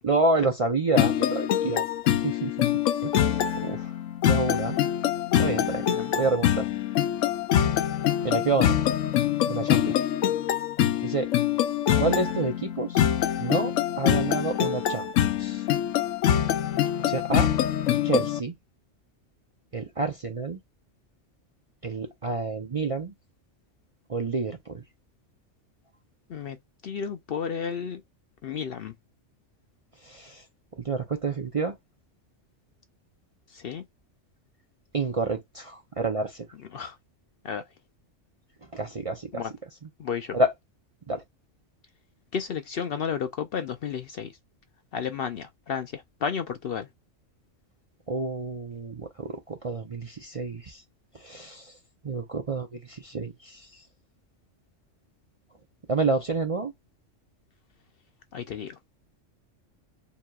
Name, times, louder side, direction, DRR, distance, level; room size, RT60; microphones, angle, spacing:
voice 1, 0.0-1.8 2.1-2.7 3.0-3.3 3.6-3.9 4.2-4.8 5.4-5.9 6.1-6.7 8.2-8.7 9.5-10.0 11.0-11.3 12.0-13.0 13.4-15.1 15.4-15.6 17.0-17.5 17.9-18.5 19.7-20.6 21.8-23.1 24.1-24.8 30.0-30.4 30.8-31.8 34.9-36.5 38.7-39.4 40.3-40.5 41.1-41.2 48.1-50.8 51.1-51.8 52.0-53.8 55.9-56.7, right 3 dB, 40° right, 0.5 m, -29 dB
sound 1, 0.9-18.4, left 10 dB, 80° left, 1.0 m, -25 dB
voice 2, 26.8-28.0 28.4-28.9 33.5-33.8 36.7-37.0 37.4-37.6 39.3-39.5 40.0-40.4 42.3-44.4 44.9-46.9 58.3-58.8, left 7 dB, 60° left, 0.6 m, -32 dB
7.0 x 2.9 x 2.3 m
omnidirectional pair, 1.3 m